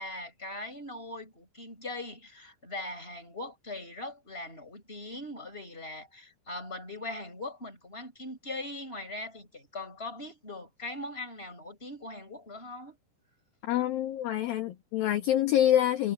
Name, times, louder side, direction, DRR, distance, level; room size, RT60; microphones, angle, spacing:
voice 1, 0.0-13.0, left 2 dB, 10° left, 6.9 m, -40 dB
voice 2, 13.6-16.1, left 11 dB, 65° left, 2.6 m, -26 dB
omnidirectional pair, 5.8 m